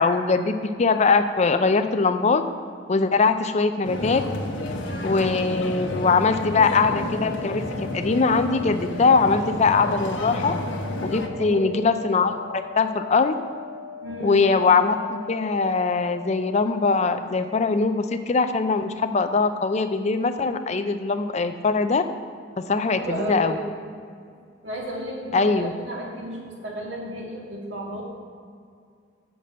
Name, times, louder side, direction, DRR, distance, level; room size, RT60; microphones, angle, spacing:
voice 1, 0.0-2.4 2.9-4.2 5.0-10.6 11.0-13.4 14.2-22.0 22.6-23.6 25.3-25.7, left 4 dB, 35° left, 9 dB, 0.5 m, -22 dB
sound 1, 3.8-11.3, left 1 dB, 85° left, 1.1 m, -31 dB
sound 2, 6.7-16.7, left 7 dB, 60° left, 1.8 m, -40 dB
voice 2, 11.4-11.9 14.0-14.5 23.0-23.7 24.6-28.0, right 1 dB, 75° right, -2 dB, 2.0 m, -33 dB
6.8 x 5.9 x 7.5 m, 2.2 s
head